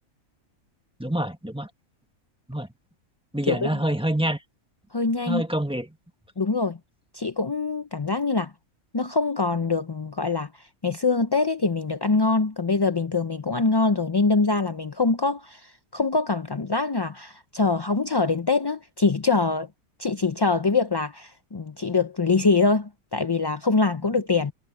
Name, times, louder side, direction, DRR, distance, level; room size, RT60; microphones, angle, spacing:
voice 1, 1.0-1.7 2.5-2.7 3.3-4.4 5.3-5.9, right 1 dB, 5° right, 1.4 m, -26 dB
voice 2, 4.9-5.4 6.4-6.8 7.1-8.5 8.9-10.5 10.8-19.7 20.0-24.5, left 3 dB, 35° left, 0.4 m, -24 dB
omnidirectional pair, 1.4 m